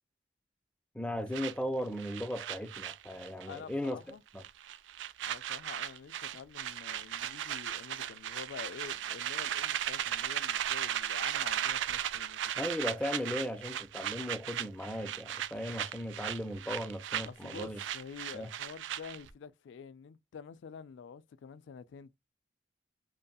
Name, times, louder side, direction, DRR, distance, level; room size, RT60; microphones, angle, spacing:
voice 1, 0.9-4.0 4.3-4.4 12.6-17.8 18.3-18.5, equal, 5° left, 0.3 m, -37 dB
sound 1, 1.3-3.6 3.8-4.1 4.4-19.3, right 10 dB, 90° right, 0.3 m, -36 dB
voice 2, 3.5-4.2 5.2-12.6 17.3-22.1, left 6 dB, 90° left, 0.3 m, -48 dB
2.6 x 2.6 x 2.2 m
head